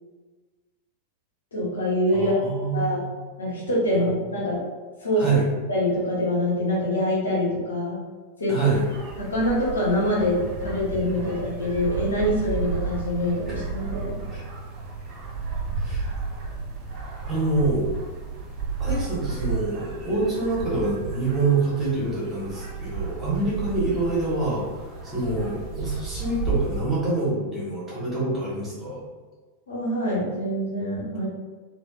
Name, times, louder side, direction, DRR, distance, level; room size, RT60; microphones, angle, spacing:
voice 1, 1.5-2.3 2.7-3.0 3.4-4.6 5.0-5.2 5.7-8.0 8.4-8.5 9.2-14.1 29.7-31.3, left 1 dB, 70° left, -6 dB, 1.1 m, -25 dB
voice 2, 2.1-3.1 5.2-5.4 8.5-8.8 14.3-14.4 15.7-16.1 17.3-17.9 18.8-29.0, right 3 dB, 15° right, -8 dB, 1.4 m, -26 dB
sound 1, 8.7-26.8, right 4 dB, 35° right, 0.6 m, -32 dB
3.3 x 2.5 x 2.4 m, 1.4 s
figure-of-eight pair, 90°, 0 cm